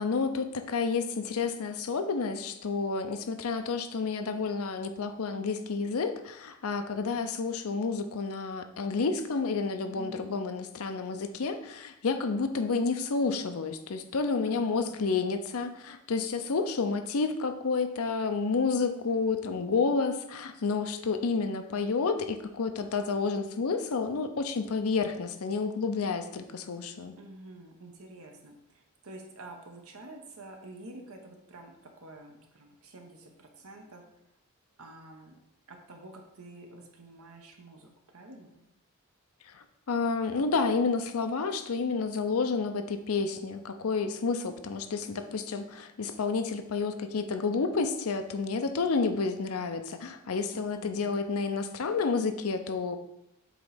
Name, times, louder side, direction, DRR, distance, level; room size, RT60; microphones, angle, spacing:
voice 1, 0.0-27.1 39.5-53.0, left 4 dB, 80° left, 8 dB, 0.6 m, -30 dB
voice 2, 9.8-10.2 14.5-15.1 27.2-34.0 34.8-35.3 35.7-38.6 50.5-51.1, right 2 dB, 80° right, 2 dB, 1.1 m, -49 dB
7.7 x 3.1 x 4.9 m, 0.83 s
head